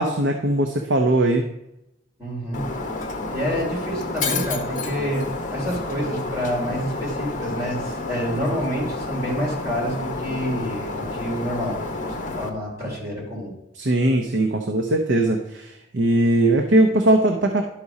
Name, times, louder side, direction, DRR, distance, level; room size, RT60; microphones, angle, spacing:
voice 1, 0.0-1.4 13.8-17.6, right 1 dB, 65° right, 3 dB, 0.8 m, -20 dB
voice 2, 2.2-2.7 3.3-5.3 5.5-13.5, equal, 15° right, -6 dB, 3.1 m, -28 dB
Shatter, 2.5-12.5, left 3 dB, 40° left, 1.0 m, -30 dB
12.0 x 4.1 x 4.9 m, 0.88 s
head